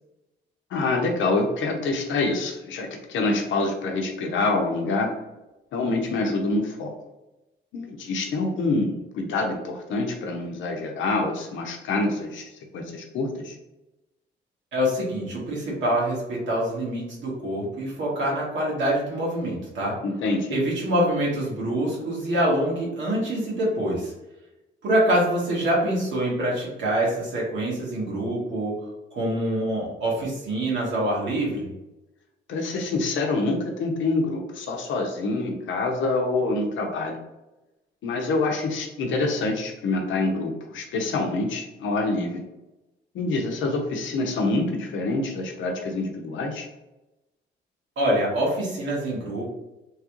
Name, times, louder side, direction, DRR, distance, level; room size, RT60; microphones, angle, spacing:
voice 1, 0.7-5.1 5.7-6.9 7.7-13.6 20.0-20.6 32.5-37.2 38.0-42.4 43.1-46.7, left 3 dB, 75° left, 3 dB, 0.7 m, -26 dB
voice 2, 14.7-20.0 20.5-24.1 24.8-31.7 48.0-49.5, right 1 dB, 70° right, -4 dB, 1.4 m, -25 dB
3.1 x 2.4 x 3.0 m, 0.98 s
cardioid pair, 90°, 20 cm